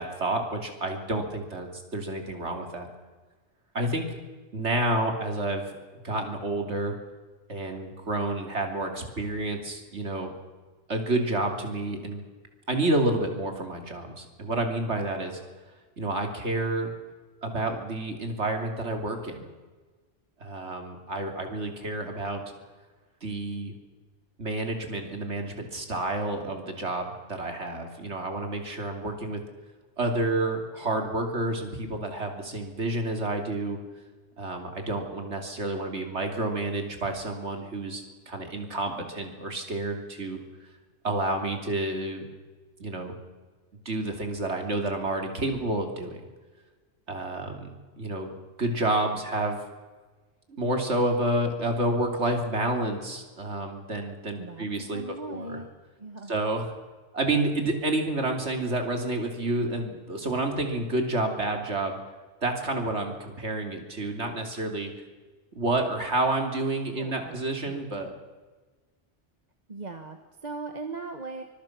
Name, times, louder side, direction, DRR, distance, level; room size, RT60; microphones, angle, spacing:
voice 1, 0.0-2.9 3.7-4.2 4.5-5.7 6.0-7.0 7.5-10.3 10.9-12.2 12.7-15.4 16.0-16.9 17.4-19.5 20.4-22.4 23.2-23.7 24.4-29.4 30.0-33.8 34.4-40.4 41.0-42.2 42.8-43.1 43.8-46.2 47.1-48.3 48.6-49.6 50.6-55.0 55.3-55.6 56.3-56.7 57.1-62.0 62.4-64.9 65.5-68.1, right 2 dB, 70° right, 4 dB, 3.4 m, -29 dB
voice 2, 54.4-55.7 56.0-56.4 66.9-67.4 67.6-67.9 69.7-71.4, right 3 dB, 35° right, 6 dB, 1.5 m, -39 dB
24.5 x 21.5 x 6.0 m, 1.3 s
omnidirectional pair, 1.2 m